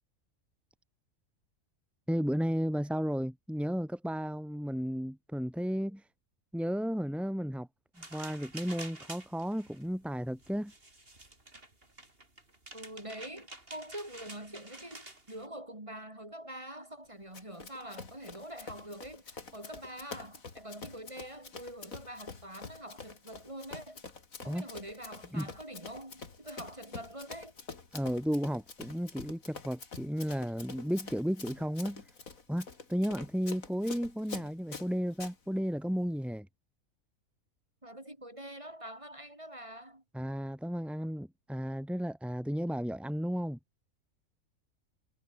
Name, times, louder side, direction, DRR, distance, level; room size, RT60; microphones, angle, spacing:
voice 1, 2.1-6.0 6.5-7.7 8.0-10.7 24.5-24.6 25.3-25.5 27.9-32.0 32.5-36.5 40.1-43.6, equal, ahead, 2.9 m, -33 dB
sound 1, 8.0-15.5, right 2 dB, 45° right, 5.5 m, -49 dB
voice 2, 12.7-24.0 24.4-27.5 37.8-40.0, right 1 dB, 25° right, 3.6 m, -45 dB
Run, 17.3-35.3, left 4 dB, 90° left, 3.0 m, -47 dB
omnidirectional pair, 1.4 m